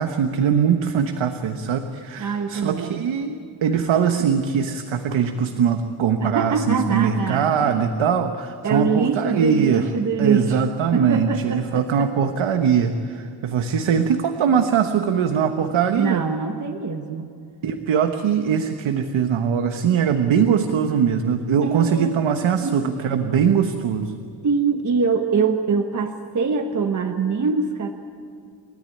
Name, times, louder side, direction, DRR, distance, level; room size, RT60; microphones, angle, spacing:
voice 1, 0.0-9.9 10.2-16.2 17.6-24.1, right 7 dB, 85° right, 6 dB, 1.3 m, -21 dB
voice 2, 2.2-3.0 6.2-7.8 8.6-10.6 10.9-12.1 16.0-17.3 21.6-22.1 22.6-22.9 24.4-27.9, right 5 dB, 40° right, 4 dB, 1.2 m, -23 dB
29.5 x 13.5 x 10.0 m, 2.4 s
wide cardioid pair, 165°, 46 cm